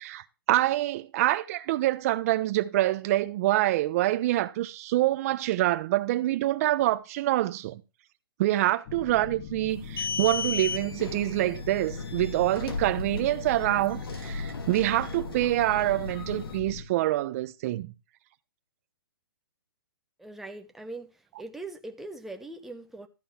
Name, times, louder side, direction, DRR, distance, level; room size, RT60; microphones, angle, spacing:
voice 1, 0.0-7.8 8.4-17.9, right 15 dB, 40° right, 0.9 m, -26 dB
sound 1, 8.9-16.9, left 6 dB, 40° left, 1.5 m, -41 dB
sound 2, 9.7-16.6, left 4 dB, 85° left, 2.5 m, -36 dB
voice 2, 20.2-21.1 21.4-23.1, right 2 dB, ahead, 0.9 m, -41 dB
13.5 x 5.3 x 5.9 m
hypercardioid pair, 150°, 12 cm